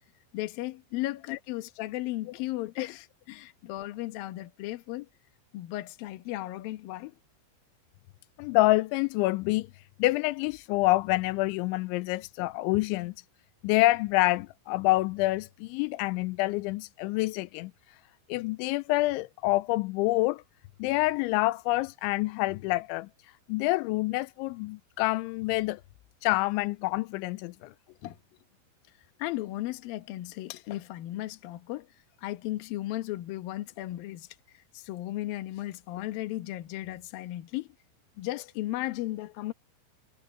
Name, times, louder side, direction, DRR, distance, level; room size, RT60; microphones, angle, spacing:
voice 1, 0.3-5.1 5.5-7.2 27.9-28.2 29.2-31.9 32.2-34.3 34.5-37.7 38.2-39.5, left 16 dB, 65° left, 2.4 m, -35 dB
voice 2, 8.4-9.7 10.0-13.1 13.6-17.7 18.3-20.4 20.8-23.1 23.5-25.8 26.2-27.7, left 20 dB, 85° left, 2.9 m, -27 dB
omnidirectional pair, 5.5 m